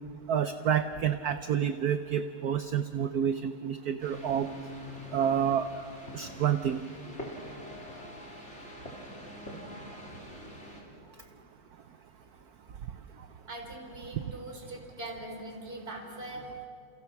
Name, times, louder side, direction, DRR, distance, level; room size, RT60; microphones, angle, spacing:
voice 1, 0.3-4.5 5.1-5.7 6.1-6.8, right 8 dB, 60° right, 10 dB, 1.0 m, -28 dB
sound 1, 4.0-10.8, equal, 30° left, 3.9 m, -44 dB
voice 2, 13.5-16.7, right 2 dB, 25° right, 2 dB, 3.7 m, -41 dB
29.5 x 28.5 x 6.0 m, 2.4 s
omnidirectional pair, 2.3 m